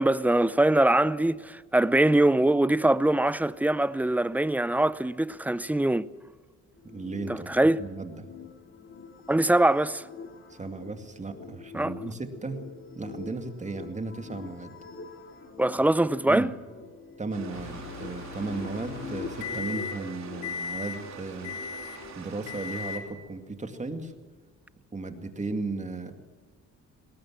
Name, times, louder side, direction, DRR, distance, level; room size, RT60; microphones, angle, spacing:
voice 1, 0.0-6.0 7.3-7.8 9.3-10.0 11.7-11.9 15.6-16.5, right 1 dB, 5° right, 0.6 m, -23 dB
sound 1, 6.8-22.1, left 4 dB, 45° left, 2.8 m, -44 dB
voice 2, 6.8-7.5 7.8-8.2 10.5-12.6 12.9-14.7 16.3-16.5 17.2-21.5 22.2-24.1 24.9-26.1, right 3 dB, 25° right, 2.2 m, -35 dB
sound 2, 17.3-23.0, right 6 dB, 65° right, 3.5 m, -46 dB
Microwave oven, 17.5-20.1 20.4-21.0 21.4-22.0 22.5-23.1, left 6 dB, 75° left, 2.6 m, -38 dB
20.0 x 18.0 x 7.4 m
cardioid pair, 90°, 30 cm